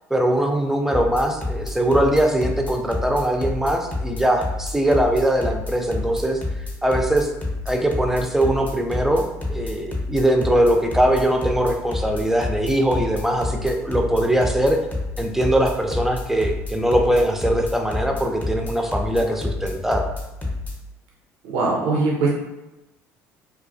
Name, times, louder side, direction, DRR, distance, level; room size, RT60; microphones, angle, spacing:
voice 1, 0.1-6.4 6.8-7.3 7.7-14.8 15.2-20.0, right 1 dB, 5° right, 3 dB, 0.4 m, -21 dB
sound 1, 0.9-20.7, left 2 dB, 25° left, 0.7 m, -28 dB
voice 2, 21.4-22.3, right 3 dB, 80° right, -3 dB, 0.4 m, -21 dB
2.3 x 2.2 x 2.5 m, 0.99 s
hypercardioid pair, 70°, 7 cm